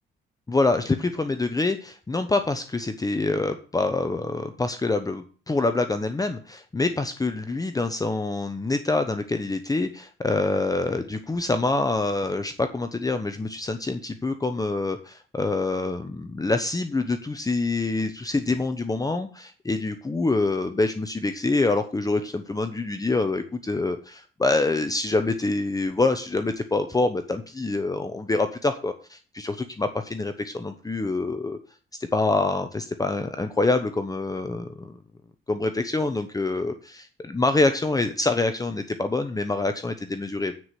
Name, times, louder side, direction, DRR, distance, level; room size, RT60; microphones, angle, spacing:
voice 1, 0.5-31.6 32.1-35.0 35.5-40.6, left 3 dB, 20° left, 8 dB, 1.0 m, -26 dB
9.4 x 5.1 x 7.6 m, 0.40 s
cardioid pair, 90°, 20 cm